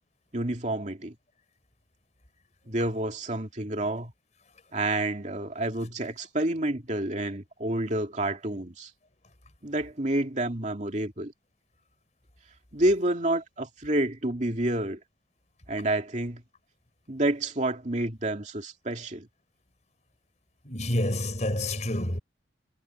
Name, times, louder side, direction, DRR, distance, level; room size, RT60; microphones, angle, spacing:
voice 1, 0.3-1.1 2.7-4.1 4.7-8.9 9.6-11.3 12.7-15.0 15.7-16.4 17.1-19.3, right 1 dB, 40° right, 2.6 m, -29 dB
voice 2, 20.6-22.2, left 1 dB, 40° left, 4.8 m, -28 dB
head